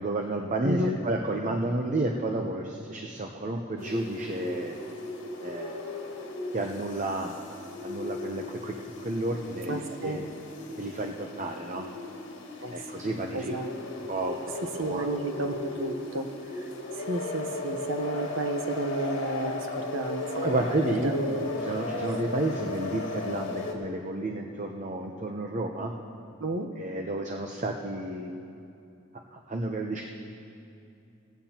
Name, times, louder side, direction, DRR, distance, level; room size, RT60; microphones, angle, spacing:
voice 1, 0.0-4.8 5.4-5.9 6.5-7.3 7.8-8.7 9.0-10.2 10.8-11.9 12.7-13.6 14.1-15.1 20.4-21.1 21.6-25.9 26.8-28.4 29.3-30.0, right 2 dB, 40° right, 2 dB, 0.7 m, -31 dB
voice 2, 0.6-1.0 9.7-10.2 12.6-12.7 13.3-13.7 14.8-16.3 16.6-16.7 17.0-20.5 21.0-21.5 26.4-26.7, right 1 dB, 85° right, 5 dB, 1.0 m, -31 dB
sound 1, 3.8-23.7, left 2 dB, 65° left, 2.0 m, -37 dB
18.0 x 16.0 x 2.9 m, 2.7 s
head